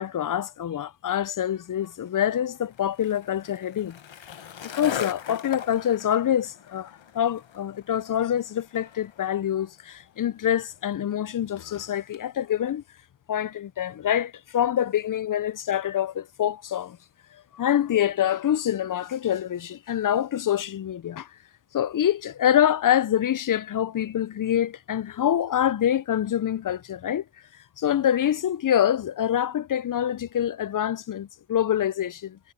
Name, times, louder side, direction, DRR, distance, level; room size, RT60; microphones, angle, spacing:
voice 1, 0.0-4.0 4.7-12.8 13.3-17.0 17.5-21.3 21.7-27.2 27.8-32.4, left 10 dB, 45° left, 0.5 m, -25 dB
Skateboard, 1.7-12.2, left 9 dB, 70° left, 1.2 m, -41 dB
cardioid pair, 70°, 47 cm